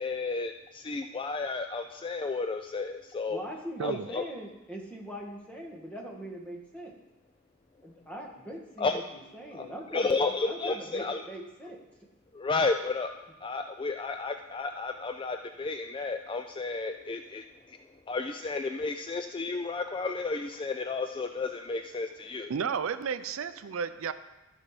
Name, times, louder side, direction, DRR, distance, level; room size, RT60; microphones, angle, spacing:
voice 1, 0.0-3.4 3.8-4.2 8.8-9.0 9.5-9.7 9.9-11.2 12.3-17.8 18.1-22.5, left 3 dB, 25° left, 6 dB, 0.3 m, -32 dB
voice 2, 3.3-7.0 7.8-11.8, right 1 dB, 5° left, -1 dB, 1.5 m, -42 dB
voice 3, 22.5-24.1, right 6 dB, 70° right, 12 dB, 0.4 m, -32 dB
13.5 x 5.5 x 4.9 m, 0.98 s
head